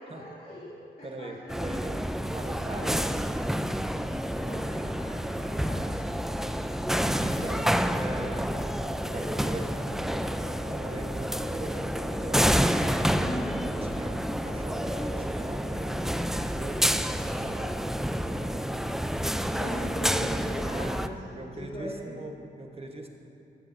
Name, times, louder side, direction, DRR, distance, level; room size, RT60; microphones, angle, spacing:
voice 1, 0.0-1.3 1.6-1.9 4.3-6.6 13.1-13.6 18.9-22.1, equal, 50° left, -10 dB, 2.8 m, -39 dB
voice 2, 1.0-2.0 2.3-3.1 6.9-8.5 9.1-10.4 10.7-13.0 13.8-16.0 16.5-17.9 18.1-18.7 20.7-21.0 21.3-23.1, right 2 dB, 30° right, 3 dB, 1.3 m, -41 dB
sound 1, 1.5-21.1, equal, ahead, 0.4 m, -29 dB
sound 2, 6.1-20.5, left 1 dB, 75° left, 1.7 m, -47 dB
15.0 x 13.0 x 2.7 m, 2.7 s
cardioid pair, 60°, 19 cm